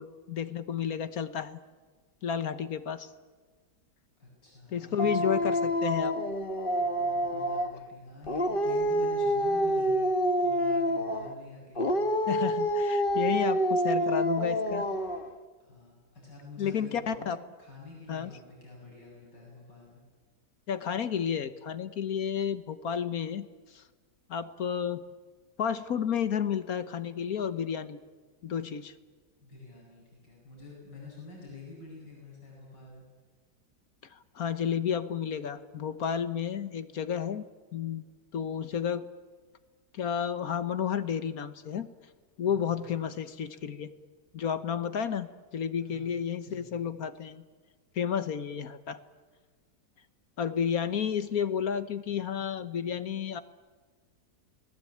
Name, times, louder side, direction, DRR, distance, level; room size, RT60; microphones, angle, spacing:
voice 1, 0.0-1.6 2.2-3.1 4.7-6.1 12.3-14.9 16.6-17.4 18.1-18.3 20.7-23.5 23.7-23.8 24.3-25.0 25.6-28.0 28.4-28.9 34.1-37.4 37.7-38.0 38.3-39.1 39.9-41.9 42.4-43.9 44.3-45.3 45.5-47.4 47.9-49.0 50.4-53.4, left 8 dB, 60° left, 12 dB, 1.4 m, -31 dB
voice 2, 4.2-5.9 6.7-10.1 10.4-12.1 15.6-20.0 29.4-33.0 42.5-43.6 45.8-47.0, left 2 dB, 80° left, -3 dB, 8.9 m, -48 dB
Dog, 5.0-7.8 8.2-11.3 11.7-15.3, equal, 35° left, 1.4 m, -27 dB
29.0 x 19.5 x 8.6 m, 1.4 s
omnidirectional pair, 1.9 m